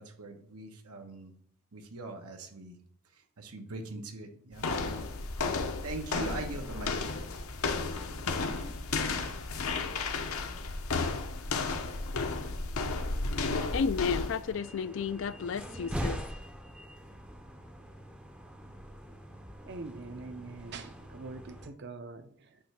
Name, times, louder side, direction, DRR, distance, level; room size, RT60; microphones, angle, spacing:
voice 1, 0.0-1.3 1.7-2.8 3.1-4.7 5.4-7.5, right 2 dB, 90° right, 1.1 m, -42 dB
sound 1, 4.6-14.5, left 3 dB, 75° left, 0.8 m, -33 dB
voice 2, 13.7-16.2, left 6 dB, 55° left, 0.3 m, -32 dB
sound 2, 14.4-21.7, equal, 5° right, 0.5 m, -42 dB
voice 3, 19.6-22.6, right 3 dB, 50° right, 0.6 m, -44 dB
8.5 x 3.2 x 5.8 m
head